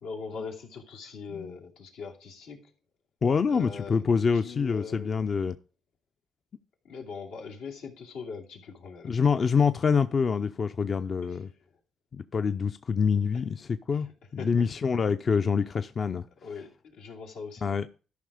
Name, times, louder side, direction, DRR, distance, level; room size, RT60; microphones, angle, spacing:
voice 1, 0.0-2.7 3.5-4.0 4.3-5.4 6.8-9.1 11.2-11.5 13.9-14.1 14.4-14.7 16.4-17.7, left 5 dB, 90° left, 2.7 m, -41 dB
voice 2, 3.2-5.6 9.0-11.5 12.1-14.1 14.3-16.3 17.6-17.9, left 5 dB, 45° left, 0.5 m, -26 dB
13.0 x 5.5 x 5.0 m
cardioid pair, 90°, 0 cm